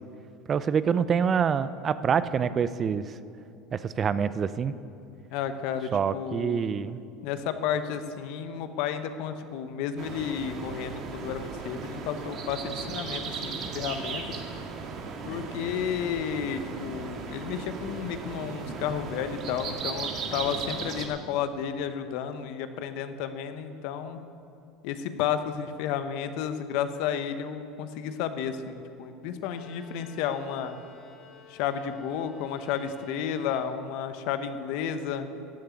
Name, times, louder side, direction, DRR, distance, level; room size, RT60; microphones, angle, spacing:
voice 1, 0.5-3.0 3.7-4.7 5.9-7.0, right 7 dB, 35° right, 15 dB, 0.5 m, -26 dB
voice 2, 5.3-6.7 7.2-14.4 15.2-24.2 24.8-30.8 31.5-35.3, left 8 dB, 70° left, 10 dB, 0.9 m, -32 dB
sound 1, 10.0-21.1, right 5 dB, 50° right, 1.8 m, -36 dB
Bowed string instrument, 29.4-34.2, left 6 dB, 35° left, 2.9 m, -54 dB
14.0 x 6.8 x 9.7 m, 2.6 s
supercardioid pair, 95°, 0 cm